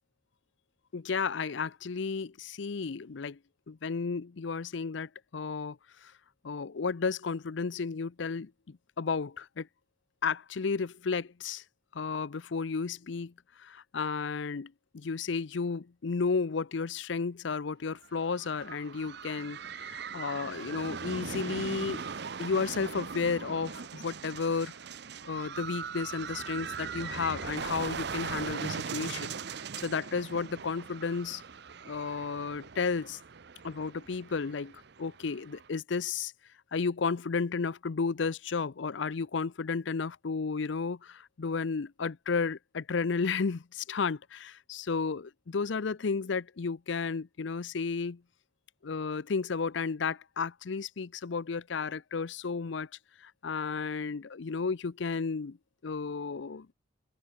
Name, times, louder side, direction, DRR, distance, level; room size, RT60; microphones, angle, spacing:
voice 1, 0.9-3.4 3.7-5.8 6.4-9.7 10.2-11.6 11.9-13.3 13.6-19.6 19.9-22.0 22.4-24.7 25.2-29.4 29.8-31.4 31.8-33.2 33.6-34.7 35.0-36.3 36.7-48.2 48.8-52.9 53.2-55.6 55.8-56.7, left 5 dB, 70° left, 0.6 m, -33 dB
sound 1, 18.0-35.7, right 6 dB, 60° right, 0.7 m, -40 dB
open air
head